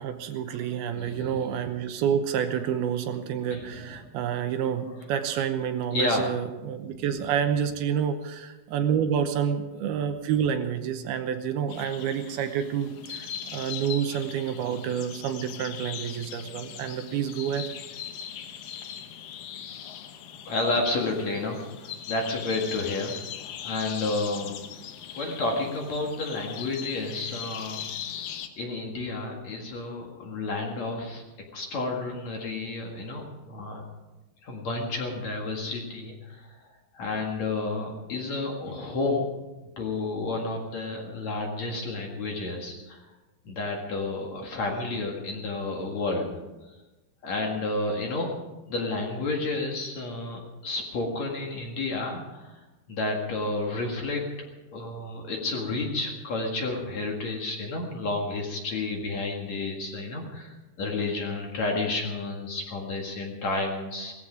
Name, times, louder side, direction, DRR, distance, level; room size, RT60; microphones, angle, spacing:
voice 1, 0.0-17.7, right 8 dB, 75° right, 7 dB, 2.7 m, -28 dB
voice 2, 0.9-1.5 3.5-3.9 5.9-6.2 6.9-7.1 20.5-23.2 23.6-24.5 25.1-27.8 28.6-31.2 31.5-33.8 34.4-36.6 36.9-39.3 39.8-43.0 43.5-46.4 47.2-48.3 48.7-52.6 52.9-64.1, left 2 dB, 50° left, 0 dB, 2.7 m, -31 dB
sound 1, 11.7-28.5, left 9 dB, 70° left, 2.4 m, -40 dB
18.0 x 15.0 x 5.1 m, 1.1 s
omnidirectional pair, 4.7 m